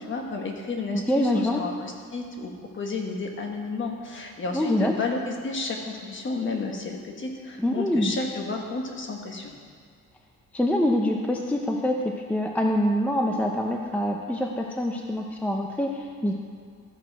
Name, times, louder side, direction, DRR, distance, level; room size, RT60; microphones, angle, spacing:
voice 1, 0.0-9.5, left 3 dB, 40° left, 2 dB, 1.2 m, -32 dB
voice 2, 0.9-1.6 4.5-5.0 7.6-8.1 10.5-16.3, left 1 dB, 5° left, 2 dB, 0.5 m, -25 dB
13.0 x 5.9 x 4.6 m, 2.1 s
cardioid pair, 150°, 31 cm